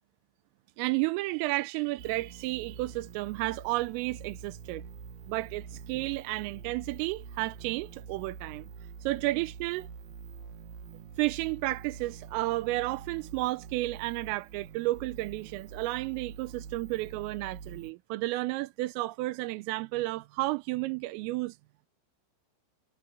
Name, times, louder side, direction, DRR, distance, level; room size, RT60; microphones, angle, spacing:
voice 1, 0.8-4.8 5.3-8.7 9.0-9.9 11.2-21.6, right 20 dB, 90° right, 3.4 m, -32 dB
sound 1, 2.0-17.9, right 6 dB, 55° right, 3.4 m, -46 dB
omnidirectional pair, 6.0 m